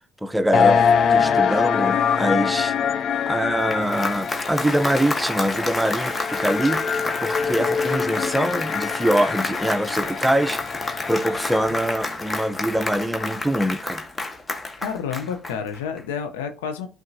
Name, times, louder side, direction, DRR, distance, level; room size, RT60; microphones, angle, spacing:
voice 1, 0.2-2.7 3.3-6.8 7.2-10.6 11.1-14.0, right 1 dB, 10° right, 0.6 m, -24 dB
sound 1, 0.5-11.9, left 7 dB, 55° left, 0.3 m, -24 dB
Applause, 3.4-16.0, left 2 dB, 25° left, 1.1 m, -29 dB
voice 2, 14.8-16.9, left 7 dB, 90° left, 0.7 m, -29 dB
10.5 x 3.6 x 2.7 m
hypercardioid pair, 65°, 0 cm